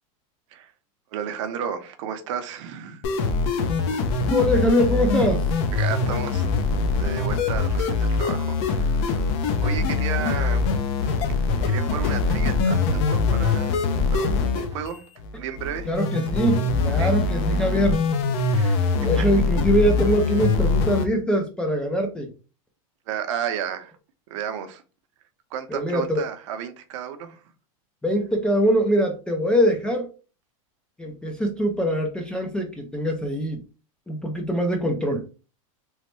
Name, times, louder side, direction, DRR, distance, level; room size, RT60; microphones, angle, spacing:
voice 1, 1.1-3.0 5.7-6.6 6.9-9.3 9.6-11.1 11.7-13.8 14.1-15.0 15.4-15.9 17.0-17.1 18.5-18.8 19.2-19.3 23.1-23.9 24.3-24.8 25.5-27.4, right 8 dB, 60° right, 0.6 m, -33 dB
sound 1, 3.0-21.0, left 4 dB, 55° left, 0.5 m, -23 dB
voice 2, 4.3-5.5 15.9-18.0 19.0-22.3 25.7-26.2 28.0-30.1 31.0-33.6 34.1-35.3, equal, 5° left, 0.3 m, -23 dB
3.1 x 2.1 x 3.0 m
supercardioid pair, 145°, 18 cm